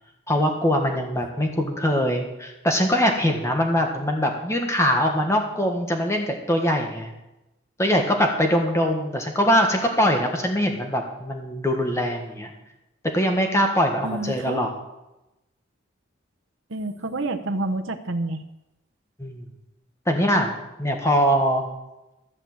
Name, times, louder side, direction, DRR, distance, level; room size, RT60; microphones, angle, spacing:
voice 1, 0.3-7.1 7.8-12.5 13.1-14.7 19.2-19.5 20.1-20.5 20.8-21.6, equal, 15° left, 3 dB, 1.5 m, -22 dB
voice 2, 14.0-14.6 16.7-18.4, right 2 dB, 75° right, 5 dB, 1.0 m, -28 dB
14.0 x 6.5 x 7.9 m, 0.96 s
head